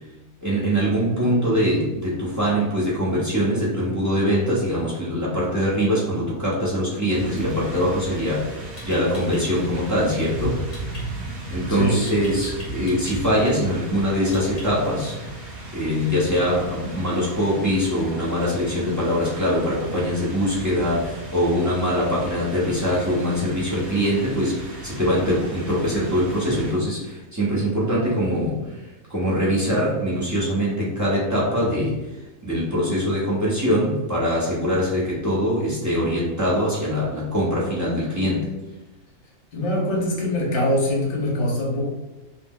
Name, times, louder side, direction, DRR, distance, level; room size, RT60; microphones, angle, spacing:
voice 1, 0.4-10.6 11.5-15.2 15.7-28.6 29.1-32.0 32.4-38.5, equal, 25° right, -8 dB, 0.4 m, -23 dB
sound 1, 7.1-26.7, right 2 dB, 55° right, 0.9 m, -36 dB
sound 2, 8.8-9.4 10.7-11.0 12.1-13.2 14.3-14.9, left 1 dB, 20° left, 1.0 m, -41 dB
voice 2, 11.7-12.3 39.5-41.9, left 1 dB, 50° left, -3 dB, 1.0 m, -23 dB
2.7 x 2.0 x 3.5 m, 1.1 s
omnidirectional pair, 1.5 m